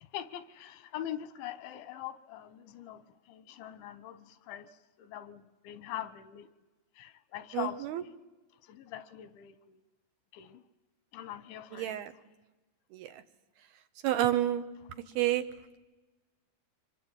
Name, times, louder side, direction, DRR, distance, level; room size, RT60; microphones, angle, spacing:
voice 1, 0.1-3.0 3.3-4.7 5.0-6.5 7.0-7.8 8.7-9.8 10.3-10.6 11.1-12.0, left 12 dB, 90° left, 13 dB, 3.6 m, -42 dB
voice 2, 7.5-8.0 11.7-12.1 12.9-13.2 14.0-14.7 15.2-15.5, right 13 dB, 70° right, 9 dB, 2.6 m, -29 dB
25.5 x 23.0 x 8.9 m, 1.1 s
omnidirectional pair, 5.1 m